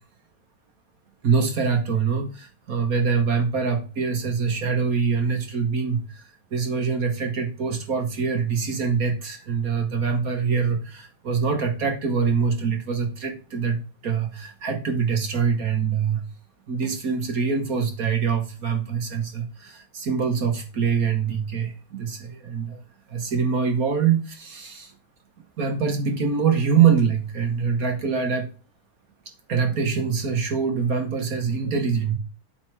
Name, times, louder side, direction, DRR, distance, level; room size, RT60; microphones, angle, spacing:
voice 1, 1.2-16.2 16.7-22.8 23.1-24.9 25.6-28.5 29.5-32.2, right 6 dB, 50° right, 5 dB, 1.4 m, -24 dB
8.5 x 4.2 x 4.6 m, 0.35 s
omnidirectional pair, 2.2 m